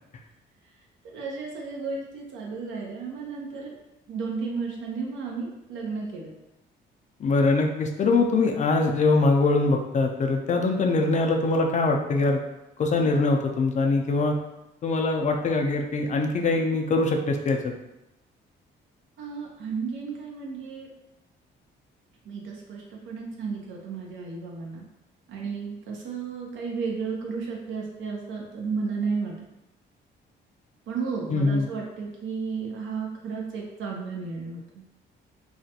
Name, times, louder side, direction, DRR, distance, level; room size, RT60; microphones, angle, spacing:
voice 1, 1.0-3.7 4.1-6.3 19.2-20.9 22.3-24.8 25.3-29.3 30.9-34.8, right 5 dB, 75° right, -2 dB, 0.5 m, -33 dB
voice 2, 7.2-12.4 12.8-14.4 14.8-17.7 31.3-31.7, left 3 dB, 40° left, 3 dB, 0.4 m, -23 dB
2.4 x 2.1 x 2.7 m, 0.93 s
cardioid pair, 90°, 20 cm